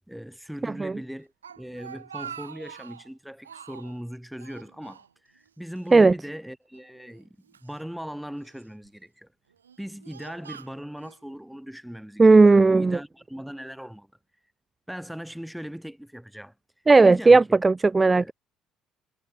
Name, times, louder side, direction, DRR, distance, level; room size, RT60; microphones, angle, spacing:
voice 1, 0.1-7.3 7.6-9.3 9.8-14.1 14.9-16.5 17.0-17.6 18.1-18.3, equal, ahead, 5.0 m, -39 dB
voice 2, 0.6-0.9 5.9-6.1 12.2-13.0 16.9-18.3, right 3 dB, 20° right, 0.4 m, -16 dB
Speech, 1.2-3.1 3.4-4.0 4.4-5.5 5.8-5.9 6.7-7.7 8.4-8.9 9.5-11.2, right 7 dB, 85° right, 3.3 m, -44 dB
figure-of-eight pair, 55°, 0 cm